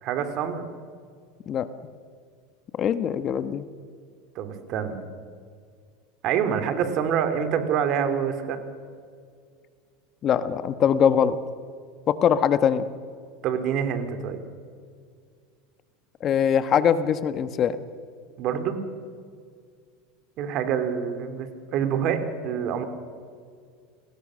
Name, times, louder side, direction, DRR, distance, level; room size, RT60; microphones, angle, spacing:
voice 1, 0.0-0.7 4.3-5.0 6.2-8.6 13.4-14.4 18.4-18.8 20.4-22.8, right 8 dB, 50° right, 8 dB, 3.1 m, -26 dB
voice 2, 2.8-3.6 10.2-11.4 12.1-12.9 16.2-17.8, left 8 dB, 40° left, 12 dB, 1.2 m, -22 dB
29.0 x 19.5 x 6.4 m, 2.1 s
supercardioid pair, 110°, 0 cm